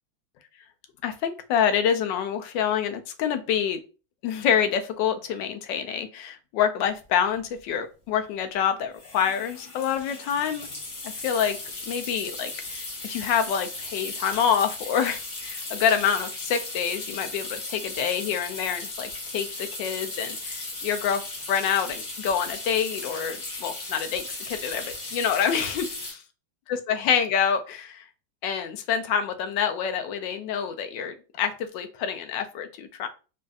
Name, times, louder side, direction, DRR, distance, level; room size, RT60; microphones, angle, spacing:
voice 1, 1.0-3.8 4.2-10.7 11.1-11.6 11.8-21.2 21.5-26.2 26.7-28.1 28.4-33.1, left 8 dB, 75° left, 8 dB, 1.2 m, -27 dB
sound 1, 7.0-7.1 7.3-7.6 8.9-26.1, left 2 dB, 50° left, 1.5 m, -36 dB
5.0 x 2.4 x 2.4 m, 0.34 s
omnidirectional pair, 2.2 m